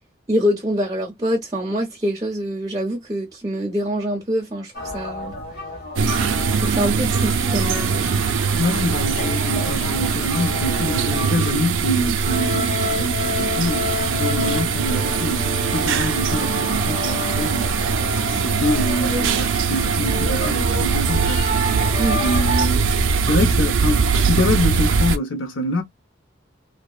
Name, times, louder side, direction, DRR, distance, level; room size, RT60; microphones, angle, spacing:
voice 1, 0.3-5.3 6.5-8.2 22.0-22.2, equal, 20° right, 0.5 m, -25 dB
sound 1, 4.7-22.7, left 2 dB, 55° left, 1.5 m, -30 dB
sound 2, 6.0-25.2, right 5 dB, 85° right, 0.4 m, -21 dB
voice 2, 8.5-17.7 18.3-21.4 22.2-22.8 23.2-25.8, left 1 dB, 85° left, 0.7 m, -25 dB
2.7 x 2.1 x 2.3 m
head